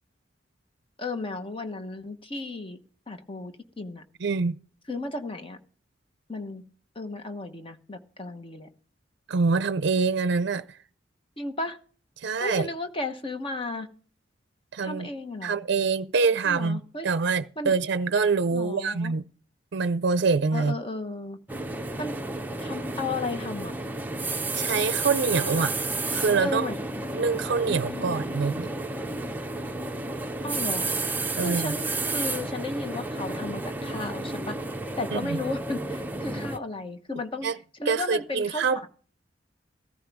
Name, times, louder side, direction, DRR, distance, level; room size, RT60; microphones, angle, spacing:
voice 1, 1.0-2.8 3.1-4.0 4.9-5.6 6.3-6.6 6.9-8.7 11.4-11.8 12.4-13.9 14.8-15.6 16.4-17.1 17.6-17.8 18.5-19.1 20.5-21.4 22.0-22.1 22.6-23.7 26.4-26.8 27.7-28.1 30.4-30.8 31.3-34.6 35.0-37.5 37.8-38.9, left 2 dB, 30° left, 1.1 m, -34 dB
voice 2, 4.2-4.5 9.3-10.8 12.2-12.7 14.7-15.1 15.4-19.2 19.7-20.8 24.5-25.8 26.1-26.7 27.1-28.7 31.4-31.7 35.1-35.4 37.4-37.6 37.9-38.9, right 4 dB, 65° right, 0.5 m, -25 dB
sound 1, 21.5-36.6, right 2 dB, 10° right, 0.6 m, -31 dB
15.0 x 14.0 x 3.5 m
head